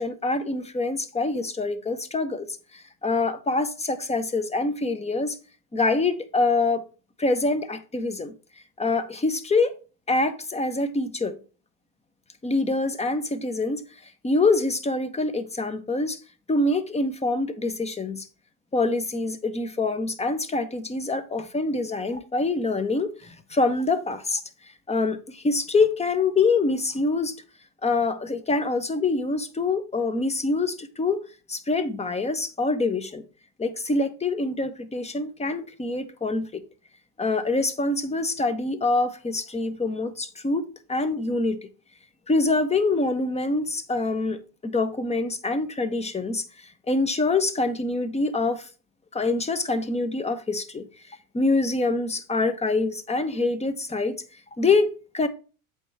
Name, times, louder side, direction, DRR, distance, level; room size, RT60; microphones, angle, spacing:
voice 1, 0.0-5.4 5.7-6.8 7.2-8.3 8.8-9.7 10.1-11.4 12.4-16.2 16.5-18.3 18.7-24.4 24.9-27.4 27.8-31.2 31.5-33.2 33.6-36.6 37.2-41.7 42.3-48.7 49.1-50.8 51.3-54.2 54.6-55.3, left 3 dB, 15° left, 1.0 m, -25 dB
8.0 x 3.6 x 5.5 m
supercardioid pair, 105°, 44 cm